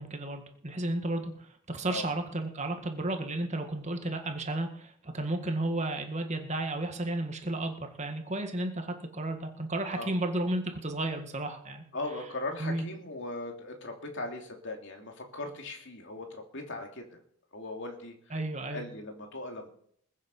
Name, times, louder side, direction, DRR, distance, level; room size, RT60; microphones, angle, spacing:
voice 1, 0.0-11.8 12.6-12.9 18.3-18.9, right 2 dB, 30° right, 5 dB, 1.8 m, -33 dB
voice 2, 11.9-17.2 17.5-18.1 18.7-19.7, left 2 dB, 55° left, 3 dB, 2.9 m, -39 dB
21.5 x 7.5 x 5.5 m, 0.63 s
head